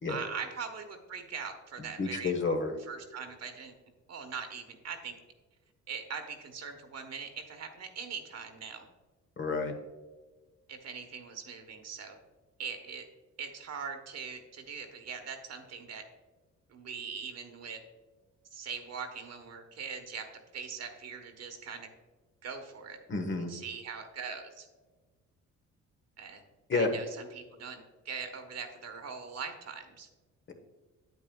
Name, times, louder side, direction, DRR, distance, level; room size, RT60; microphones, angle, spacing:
voice 1, 0.1-2.3 2.9-3.7 4.1-5.1 5.9-8.9 10.7-12.2 12.6-13.1 13.4-16.0 16.7-17.8 18.5-20.3 20.5-21.9 22.4-23.0 23.4-24.7 26.2-26.4 26.7-30.1, right 6 dB, 55° right, 5 dB, 1.2 m, -41 dB
voice 2, 2.0-2.7 9.4-9.7 23.1-23.5 26.7-26.9, left 3 dB, 40° left, 5 dB, 1.1 m, -30 dB
8.9 x 8.2 x 2.3 m, 1.3 s
cardioid pair, 90°, 30 cm